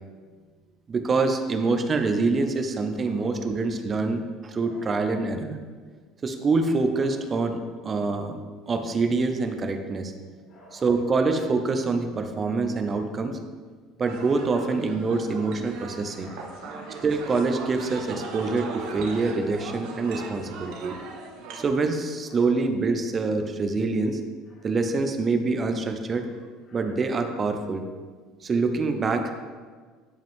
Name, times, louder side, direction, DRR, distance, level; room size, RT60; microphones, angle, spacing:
voice 1, 0.9-5.6 6.2-8.4 8.7-10.1 10.7-13.4 14.0-16.3 17.0-20.9 21.5-24.2 24.6-26.3 26.7-27.9 28.4-29.3, right 3 dB, 25° right, 7 dB, 0.6 m, -25 dB
voice 2, 4.6-5.2 7.0-7.1 10.5-10.9 16.1-17.1 17.8-18.6 18.9-19.1 19.9-20.3 20.6-21.6 26.7-26.8, left 1 dB, 40° left, -5 dB, 2.4 m, -50 dB
sound 1, 14.1-21.7, right 4 dB, 70° right, 1.1 m, -39 dB
10.5 x 5.1 x 3.7 m, 1.5 s
cardioid pair, 145°, 0 cm